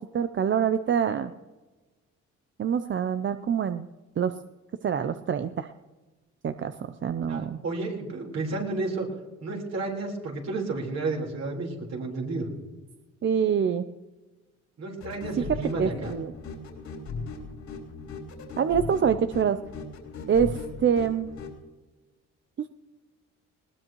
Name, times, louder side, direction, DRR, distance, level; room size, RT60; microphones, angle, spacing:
voice 1, 0.0-1.3 2.6-3.8 4.2-4.3 4.8-5.7 6.4-7.6 13.2-13.8 15.4-16.3 18.6-19.6 20.3-21.3, right 7 dB, 40° right, 10 dB, 0.6 m, -25 dB
voice 2, 7.3-9.1 9.4-12.5 14.8-16.1, right 3 dB, 60° right, 0 dB, 4.3 m, -31 dB
sound 1, 15.0-21.6, left 4 dB, 70° left, 3.6 m, -38 dB
20.0 x 18.5 x 3.1 m, 1.2 s
cardioid pair, 90°, 30 cm